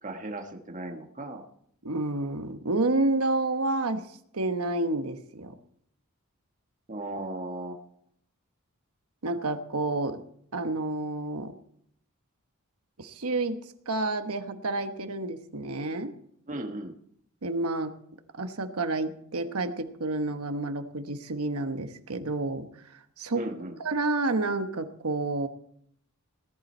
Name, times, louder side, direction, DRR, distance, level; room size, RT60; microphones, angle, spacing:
voice 1, 0.0-1.5 6.9-7.8 16.5-16.9 23.3-23.8, right 2 dB, 35° right, 5 dB, 1.3 m, -36 dB
voice 2, 1.8-4.0 4.3-5.5 9.2-10.2 10.5-11.5 13.0-13.6 13.9-16.1 17.4-17.9 18.4-23.4 23.8-25.5, right 2 dB, 75° right, 8 dB, 1.2 m, -29 dB
18.5 x 11.0 x 4.4 m, 0.69 s
head